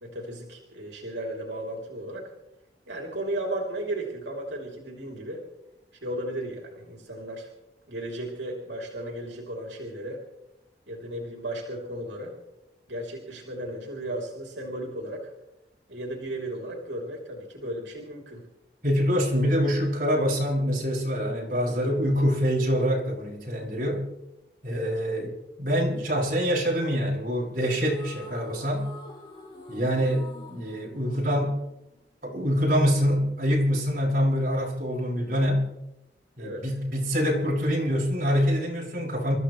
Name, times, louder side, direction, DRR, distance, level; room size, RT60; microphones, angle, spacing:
voice 1, 0.0-2.3 2.9-5.4 6.0-7.5 7.9-10.2 10.9-12.3 12.9-15.3 15.9-18.5 24.7-25.1 36.4-36.8, right 1 dB, 85° right, 0 dB, 3.4 m, -35 dB
voice 2, 18.8-24.1 24.6-25.3 25.6-28.9 29.7-31.6 32.2-35.7 36.4-39.3, equal, 50° right, -3 dB, 7.1 m, -25 dB
sound 1, 27.7-32.1, left 1 dB, 25° left, 3.0 m, -46 dB
28.5 x 14.5 x 3.3 m, 0.90 s
head